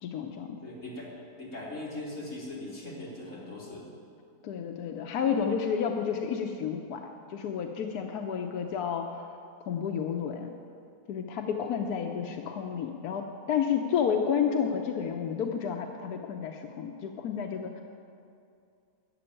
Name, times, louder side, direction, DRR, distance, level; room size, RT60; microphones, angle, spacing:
voice 1, 0.0-0.6 4.4-9.2 9.7-10.5 11.1-17.8, left 7 dB, 90° left, 4 dB, 1.3 m, -31 dB
voice 2, 0.6-3.9 6.5-6.6 12.1-12.2, left 2 dB, 55° left, -5 dB, 3.4 m, -40 dB
12.5 x 7.8 x 9.9 m, 2.5 s
omnidirectional pair, 1.6 m